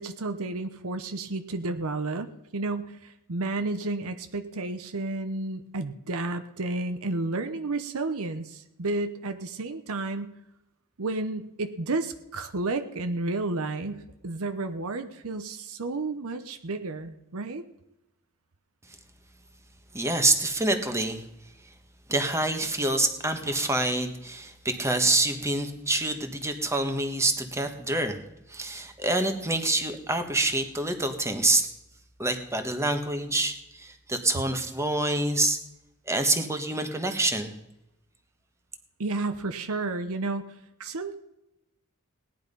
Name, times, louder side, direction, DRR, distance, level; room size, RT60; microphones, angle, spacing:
voice 1, 0.0-10.3 11.0-17.6 39.0-41.2, right 2 dB, 70° right, 8 dB, 0.9 m, -32 dB
voice 2, 19.9-21.2 22.1-28.2 28.5-31.7 32.2-35.6 36.1-37.5, right 2 dB, 15° right, 6 dB, 1.4 m, -26 dB
18.0 x 10.5 x 5.4 m, 0.90 s
head